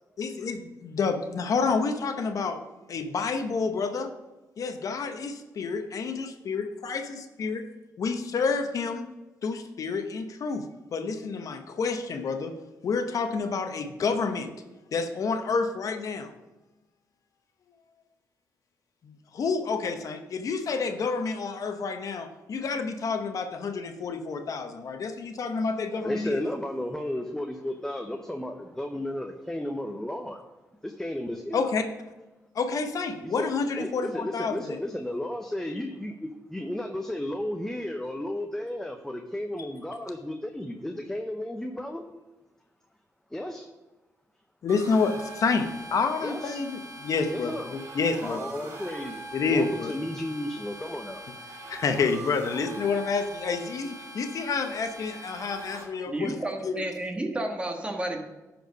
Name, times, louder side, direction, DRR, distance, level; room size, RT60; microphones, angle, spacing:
voice 1, 0.2-2.6 2.9-4.1 4.6-7.7 8.0-9.1 9.4-10.6 10.9-12.5 12.8-14.5 14.9-16.3 19.0-26.4 31.5-31.8 32.5-34.8 39.6-39.7 44.6-48.4 49.3-50.0 51.7-56.4 56.6-56.8, left 4 dB, 60° left, 7 dB, 0.9 m, -29 dB
voice 2, 25.9-30.4 30.8-31.7 33.2-33.5 33.8-42.0 43.3-43.7 46.2-46.6 47.3-47.7 48.2-49.2 49.5-51.2, left 1 dB, 5° left, 4 dB, 0.7 m, -33 dB
sound 1, 44.7-55.8, right 2 dB, 50° right, 2.6 m, -42 dB
voice 3, 56.1-58.2, right 1 dB, 20° right, 3 dB, 1.4 m, -31 dB
10.5 x 4.5 x 5.2 m, 1.1 s
cardioid pair, 80°, 6 cm